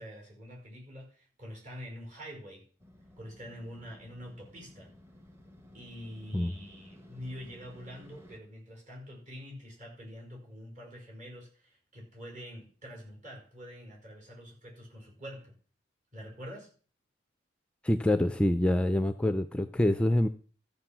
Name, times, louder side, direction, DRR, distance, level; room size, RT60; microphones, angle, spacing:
voice 1, 0.0-2.7 3.2-4.9 5.7-15.5 16.1-16.7, equal, 40° right, 0 dB, 5.4 m, -46 dB
Motorcycle, 2.8-8.4, left 1 dB, 15° right, 1.2 m, -55 dB
voice 2, 17.8-20.3, left 1 dB, 5° left, 9 dB, 0.4 m, -26 dB
13.5 x 6.8 x 5.9 m, 0.41 s
head